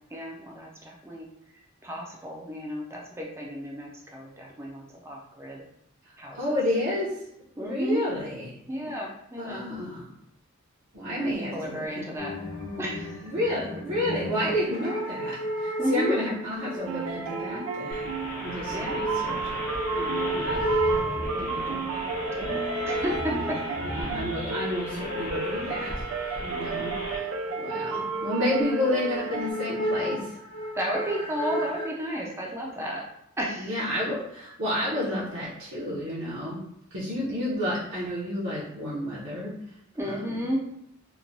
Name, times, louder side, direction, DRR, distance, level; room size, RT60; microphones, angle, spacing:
voice 1, 0.1-1.3 1.8-5.6 6.2-6.6 7.6-8.0 8.7-9.7 11.1-12.3 12.8-13.3 15.8-16.3 18.7-19.0 21.2-21.4 21.7-23.6 30.8-33.1 33.4-33.8 40.0-40.6, equal, 15° right, -2 dB, 0.4 m, -33 dB
voice 2, 6.3-7.1 7.6-8.5 8.8-8.9 9.3-10.1 10.9-12.1 13.2-18.1 18.4-19.6 19.9-20.6 21.3-21.8 23.3-23.4 23.8-25.9 26.4-27.3 27.6-30.3 33.5-36.6 36.9-39.5 40.0-40.4, left 1 dB, 60° right, -9 dB, 0.7 m, -30 dB
sound 1, 12.2-31.9, right 1 dB, 90° left, 0.9 m, -34 dB
sound 2, 16.8-29.5, right 5 dB, 85° right, 0.3 m, -33 dB
sound 3, 17.9-27.2, left 1 dB, 40° left, 0.8 m, -37 dB
3.0 x 2.1 x 2.5 m, 0.75 s
head